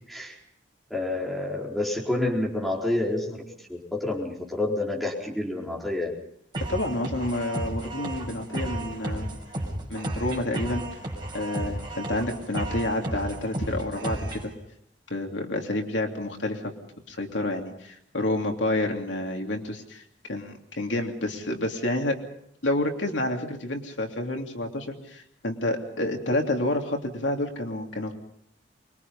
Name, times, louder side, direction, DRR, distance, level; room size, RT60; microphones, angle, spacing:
voice 1, 0.1-0.4 0.9-3.4 3.7-6.1, left 2 dB, ahead, -3 dB, 4.3 m, -28 dB
sound 1, 6.5-14.5, right 1 dB, 25° right, 5.9 m, -33 dB
voice 2, 6.7-9.3 9.9-10.8 11.3-14.5 15.1-16.7 17.1-22.2 22.6-28.1, left 1 dB, 85° left, 2 dB, 3.0 m, -29 dB
25.0 x 23.0 x 5.6 m, 0.72 s
head